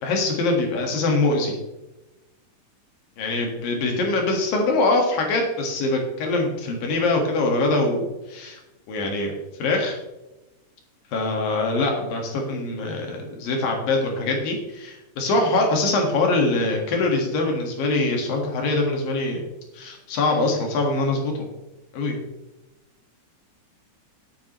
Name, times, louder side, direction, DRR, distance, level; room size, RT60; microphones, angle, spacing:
voice 1, 0.0-1.6 3.2-8.6 8.9-9.3 9.6-9.9 11.1-19.4 19.7-21.3 21.9-22.2, left 2 dB, 85° left, 1 dB, 3.5 m, -23 dB
12.0 x 12.0 x 3.1 m, 1.0 s
omnidirectional pair, 3.9 m